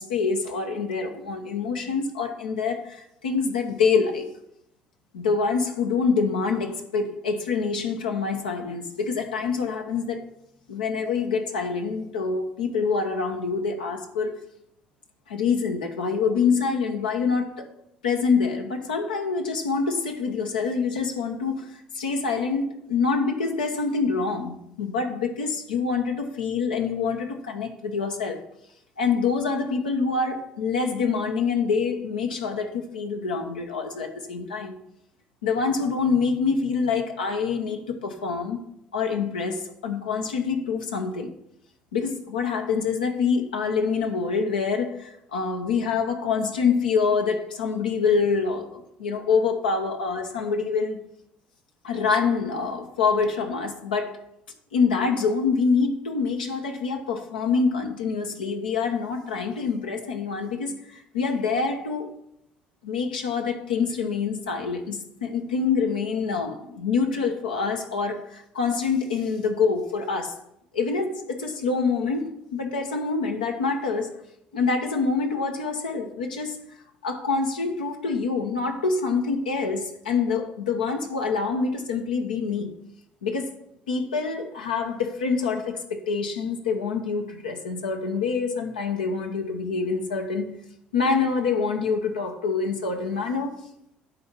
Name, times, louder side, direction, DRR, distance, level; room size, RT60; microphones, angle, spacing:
voice 1, 0.0-4.3 5.1-10.3 10.7-14.4 15.3-17.7 18.0-28.4 29.0-34.7 35.4-38.6 38.9-41.3 41.9-51.0 51.8-54.2 54.7-62.2 62.8-70.4 70.7-74.2 74.5-76.7 77.0-82.7 83.2-83.5 83.9-90.5 90.9-93.7, left 5 dB, 90° left, 0.9 m, -26 dB
10.0 x 4.1 x 5.4 m
hypercardioid pair, 55°, 5 cm